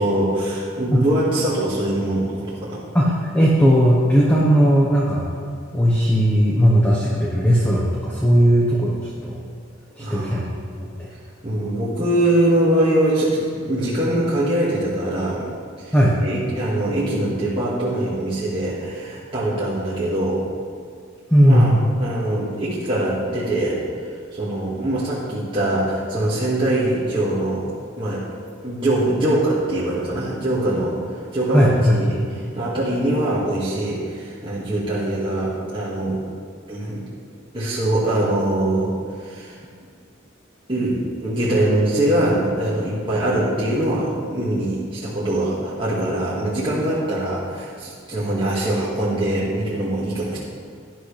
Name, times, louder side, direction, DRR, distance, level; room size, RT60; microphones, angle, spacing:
voice 1, 0.0-2.8 10.0-10.4 11.4-15.5 15.8-15.9 16.2-20.4 21.4-21.7 22.0-23.8 24.3-27.7 28.0-28.2 28.6-31.0 31.3-32.2 32.6-36.2 36.7-37.0 37.5-39.6 40.7-50.4, right 1 dB, 25° right, -9 dB, 2.1 m, -22 dB
voice 2, 2.9-5.3 5.7-9.4 10.0-10.4 10.8-11.1 15.9-16.2 21.3-21.8 31.5-32.2, equal, 10° left, -5 dB, 1.2 m, -17 dB
17.0 x 11.0 x 3.4 m, 2.1 s
head